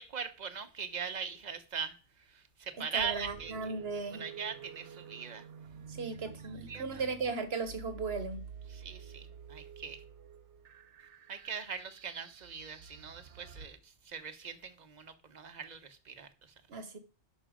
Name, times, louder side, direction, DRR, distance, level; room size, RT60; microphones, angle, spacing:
voice 1, 0.0-3.7 4.1-5.5 6.0-6.1 6.4-7.0 8.7-10.0 11.3-16.5, right 6 dB, 40° right, 1.1 m, -41 dB
voice 2, 2.9-4.2 5.9-8.4 16.7-17.0, right 4 dB, 65° right, 1.5 m, -36 dB
sound 1, 3.0-13.7, right 7 dB, 85° right, 1.2 m, -50 dB
10.0 x 6.2 x 5.1 m
omnidirectional pair, 1.2 m